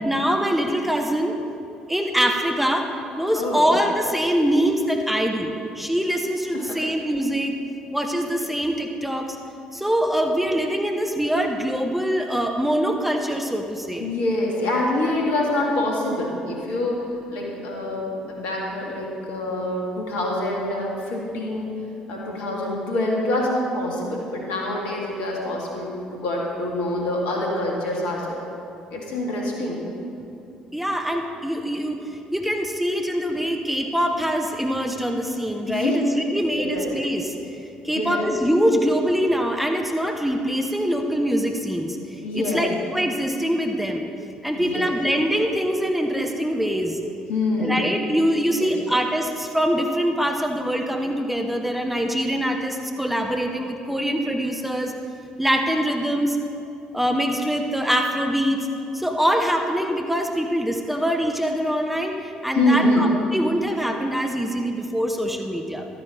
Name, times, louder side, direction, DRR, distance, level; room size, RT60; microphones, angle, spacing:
voice 1, 0.0-1.4 1.9-7.5 7.9-9.4 9.7-14.1 30.7-37.3 37.8-44.1 44.4-47.0 47.6-54.9 55.4-56.4 56.9-58.7 58.9-65.9, equal, 5° right, 3 dB, 1.0 m, -24 dB
voice 2, 3.4-3.7 6.5-6.8 14.0-21.7 22.1-28.4 28.9-29.8 35.7-36.0 36.6-36.9 37.9-38.2 42.2-42.7 44.5-44.9 47.3-47.8 48.5-48.7 62.5-63.0, left 1 dB, 65° left, -2 dB, 2.1 m, -25 dB
12.5 x 9.8 x 4.1 m, 2.8 s
figure-of-eight pair, 50°, 3 cm